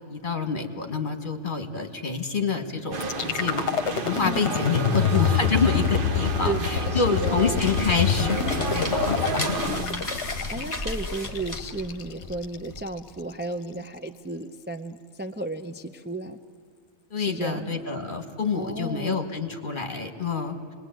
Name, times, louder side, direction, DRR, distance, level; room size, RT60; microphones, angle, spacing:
voice 1, 0.1-3.6 4.0-9.2 9.4-9.6 17.1-20.7, left 5 dB, 45° left, 5 dB, 1.9 m, -27 dB
sound 1, 2.9-9.8, right 3 dB, 50° right, 1.3 m, -31 dB
sound 2, 3.0-13.0, left 8 dB, 75° left, 1.1 m, -27 dB
voice 2, 4.8-5.3 6.4-7.7 9.6-10.1 10.5-16.4 17.2-17.8 18.5-19.2, right 2 dB, 10° right, 5 dB, 0.5 m, -34 dB
sound 3, 7.1-12.8, left 1 dB, 15° left, 3.0 m, -35 dB
27.0 x 20.5 x 9.2 m, 2.3 s
omnidirectional pair, 1.2 m